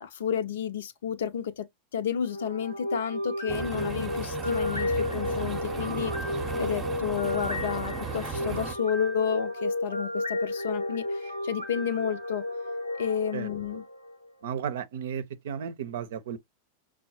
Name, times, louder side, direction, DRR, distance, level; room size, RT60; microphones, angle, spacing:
voice 1, 0.0-6.1 6.6-12.5 13.0-13.8, left 8 dB, 60° left, 0.6 m, -31 dB
sound 1, 2.2-14.3, left 1 dB, 90° left, 0.8 m, -33 dB
sound 2, 3.5-8.7, right 6 dB, 20° right, 0.8 m, -36 dB
voice 2, 14.4-16.4, right 8 dB, 60° right, 0.6 m, -34 dB
6.1 x 2.1 x 2.8 m
figure-of-eight pair, 90°, 0 cm